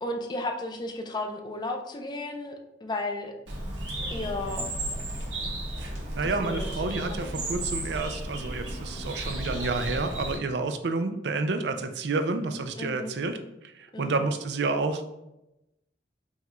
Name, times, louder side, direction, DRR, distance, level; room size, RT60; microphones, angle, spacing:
voice 1, 0.0-3.3 4.1-4.7 6.2-6.7 6.9-7.2 12.8-13.1 13.9-14.3, left 2 dB, 25° left, 4 dB, 0.5 m, -34 dB
Bird, 3.5-10.4, right 1 dB, 90° right, 1.1 m, -34 dB
voice 2, 6.1-15.2, right 3 dB, 70° right, 8 dB, 0.5 m, -30 dB
5.5 x 2.4 x 3.0 m, 0.92 s
head